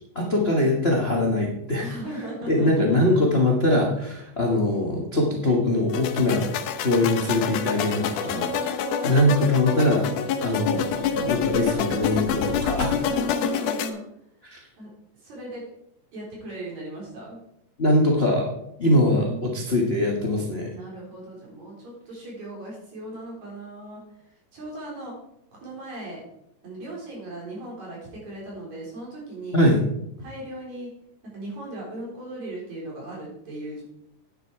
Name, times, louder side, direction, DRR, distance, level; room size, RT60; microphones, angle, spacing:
voice 1, 0.1-1.9 2.5-6.5 6.8-8.7 9.0-10.1 10.4-13.0 14.4-14.6 17.8-18.5 18.8-20.7 29.5-29.8, left 1 dB, 60° left, -1 dB, 0.6 m, -22 dB
voice 2, 1.8-3.2 8.3-9.2 12.9-14.0 14.8-14.9 15.2-15.7 16.1-17.4 18.8-19.4 20.7-24.0 24.3-25.2 25.5-26.2 26.6-29.6 30.2-30.9 31.2-33.8, right 1 dB, 55° right, -4 dB, 5.2 m, -37 dB
sound 1, 5.9-13.9, left 7 dB, 75° left, 2.2 m, -27 dB
10.0 x 9.2 x 4.7 m, 0.77 s
omnidirectional pair, 3.8 m